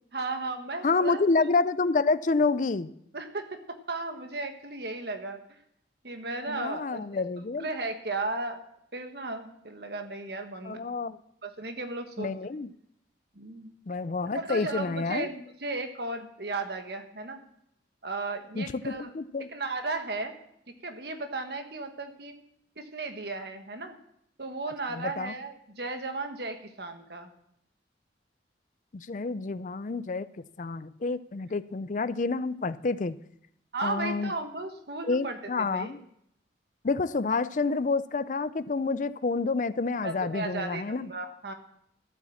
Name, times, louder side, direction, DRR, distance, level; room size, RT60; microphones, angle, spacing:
voice 1, 0.1-1.5 3.1-5.6 6.0-7.2 7.6-8.6 8.9-10.8 11.4-12.3 13.3-13.7 14.3-17.4 18.0-19.1 19.5-20.3 20.7-22.3 22.8-24.0 24.4-27.3 33.7-35.9 40.0-41.5, right 3 dB, 60° right, 6 dB, 1.5 m, -35 dB
voice 2, 0.8-2.9 6.5-7.7 10.6-11.2 12.2-12.7 13.9-15.3 18.6-19.5 24.9-25.3 28.9-30.3 30.6-33.2 33.8-34.3 35.1-36.0 36.8-41.1, left 3 dB, 45° left, 15 dB, 0.5 m, -28 dB
12.5 x 8.3 x 7.1 m, 0.75 s
head